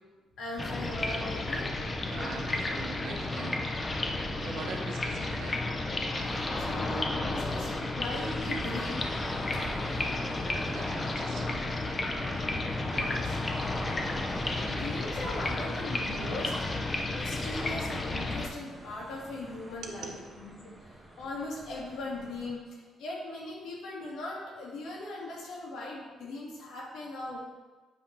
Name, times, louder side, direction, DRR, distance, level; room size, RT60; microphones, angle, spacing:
voice 1, 0.4-2.2 4.6-4.9 6.6-9.1 9.5-9.7 13.0-13.4 14.3-16.5 17.0-20.7 21.2-27.4, left 2 dB, 85° left, -4 dB, 1.8 m, -39 dB
sound 1, 0.6-18.5, left 2 dB, 30° left, 0.7 m, -32 dB
voice 2, 2.1-3.6 4.4-5.6 10.7-12.3 12.8-13.2 19.8-20.2, right 4 dB, 75° right, 1 dB, 0.9 m, -43 dB
sound 2, 8.1-22.5, right 1 dB, 15° right, 0.9 m, -48 dB
7.8 x 2.9 x 5.7 m, 1.3 s
cardioid pair, 90°, 0 cm